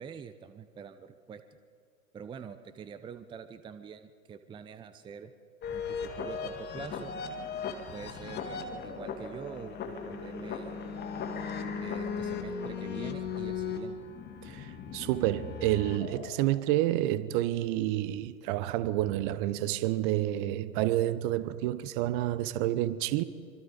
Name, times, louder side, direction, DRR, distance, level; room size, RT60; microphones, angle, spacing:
voice 1, 0.0-1.4 2.1-5.3 5.7-7.1 7.9-10.8 11.8-14.0, right 7 dB, 10° right, 0.7 m, -45 dB
sound 1, 5.6-16.6, left 5 dB, 25° left, 2.4 m, -37 dB
voice 2, 14.4-23.2, right 14 dB, 35° right, 0.9 m, -29 dB
25.0 x 25.0 x 5.2 m
figure-of-eight pair, 105°, 42 cm